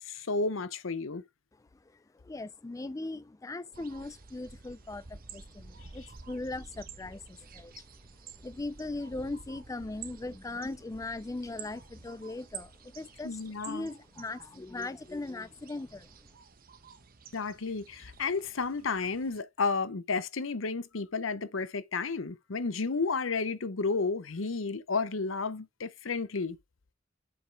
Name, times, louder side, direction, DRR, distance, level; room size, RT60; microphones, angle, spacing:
voice 1, 0.0-1.2 13.2-13.9 17.3-26.6, left 4 dB, 85° left, 0.8 m, -32 dB
voice 2, 1.8-7.8 8.4-16.1, left 2 dB, 15° left, 0.4 m, -39 dB
sound 1, 3.7-19.4, right 5 dB, 50° right, 1.0 m, -51 dB
7.3 x 5.2 x 4.6 m
head